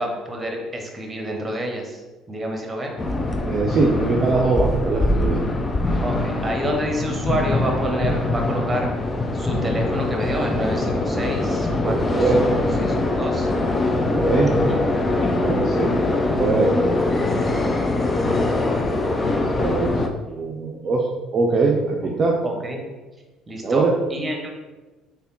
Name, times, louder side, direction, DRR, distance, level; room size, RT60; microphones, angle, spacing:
voice 1, 0.0-2.0 2.3-2.9 6.0-8.9 9.3-13.5 14.4-14.8 22.4-22.8 23.5-23.8 24.1-24.5, right 1 dB, 25° right, 1 dB, 0.8 m, -28 dB
sound 1, 3.0-20.1, left 2 dB, 25° left, 0.4 m, -23 dB
voice 2, 3.5-5.4 11.8-12.5 13.9-14.5 15.2-16.9 19.0-19.1 19.6-20.0 20.3-21.1 21.3-22.4 23.6-23.9, right 3 dB, 40° right, -1 dB, 0.4 m, -22 dB
3.4 x 2.2 x 3.8 m, 1.2 s
hypercardioid pair, 60°, 0 cm